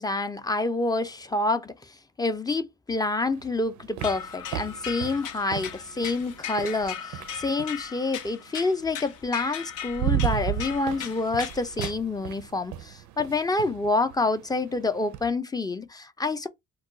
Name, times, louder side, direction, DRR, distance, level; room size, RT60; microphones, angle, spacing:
voice 1, 0.0-16.5, left 3 dB, 15° left, 0.4 m, -28 dB
sound 1, 3.3-7.8 9.1-9.2 9.6-15.3, right 11 dB, 75° right, 0.4 m, -34 dB
sound 2, 4.0-11.9, left 8 dB, 80° left, 0.5 m, -38 dB
2.3 x 2.2 x 3.7 m
cardioid pair, 90°, 30 cm